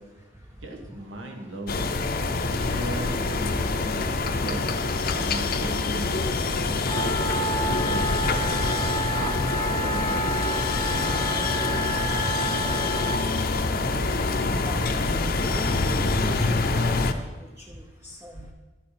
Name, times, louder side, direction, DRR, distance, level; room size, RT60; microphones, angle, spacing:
voice 1, 0.6-1.9 2.5-4.6 5.2-6.1 6.7-8.1 9.1-9.3 9.7-10.3, right 1 dB, 75° right, 2 dB, 1.6 m, -36 dB
sound 1, 1.7-17.1, left 3 dB, 50° left, 0.7 m, -25 dB
Wind instrument woodwind instrument, 6.9-13.2, right 2 dB, 20° left, 0.9 m, -30 dB
voice 2, 14.5-15.1 15.6-17.0 17.6-18.5, right 1 dB, 15° right, 0 dB, 0.7 m, -39 dB
11.5 x 6.7 x 5.8 m, 1.2 s
head